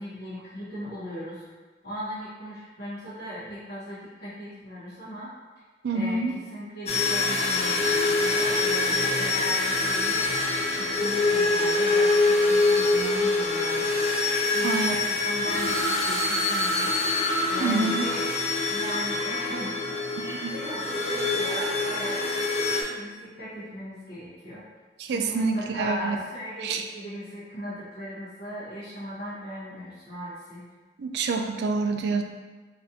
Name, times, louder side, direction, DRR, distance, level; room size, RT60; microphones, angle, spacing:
voice 1, 0.0-1.4 1.8-5.3 5.9-6.2 6.5-10.3 10.7-13.9 14.5-18.3 18.7-19.8 20.5-22.2 22.8-24.6 25.0-30.6, equal, 55° left, -11 dB, 0.9 m, -38 dB
voice 2, 5.8-6.3 14.6-15.0 17.6-18.1 20.2-20.5 25.0-26.2 26.6-26.8 31.0-32.2, right 4 dB, 65° right, 5 dB, 0.3 m, -27 dB
sound 1, 6.9-22.8, left 3 dB, 35° left, 0.4 m, -25 dB
4.1 x 2.5 x 2.7 m, 1.3 s
head